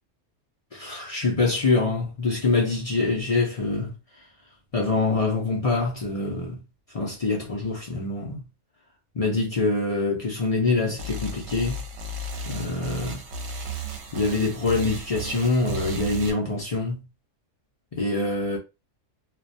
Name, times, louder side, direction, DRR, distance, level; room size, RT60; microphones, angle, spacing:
voice 1, 0.7-3.9 4.7-6.6 6.9-8.4 9.1-11.8 12.4-13.2 14.1-17.0 17.9-18.6, left 3 dB, 50° left, 0.4 m, -25 dB
sound 1, 11.0-16.3, right 2 dB, 65° right, 0.8 m, -34 dB
2.3 x 2.2 x 2.6 m
omnidirectional pair, 1.4 m